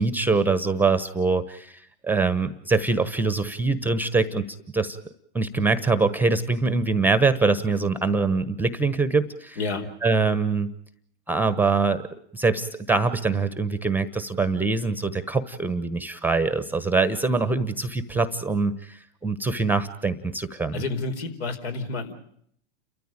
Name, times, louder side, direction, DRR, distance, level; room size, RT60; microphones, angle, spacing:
voice 1, 0.0-5.0 5.3-9.6 10.0-10.7 11.3-12.0 12.3-20.8, right 4 dB, 5° right, 13 dB, 1.1 m, -24 dB
voice 2, 9.6-9.9 20.7-22.1, left 3 dB, 70° left, 7 dB, 4.6 m, -29 dB
30.0 x 14.0 x 9.0 m, 0.67 s
hypercardioid pair, 125°, 34 cm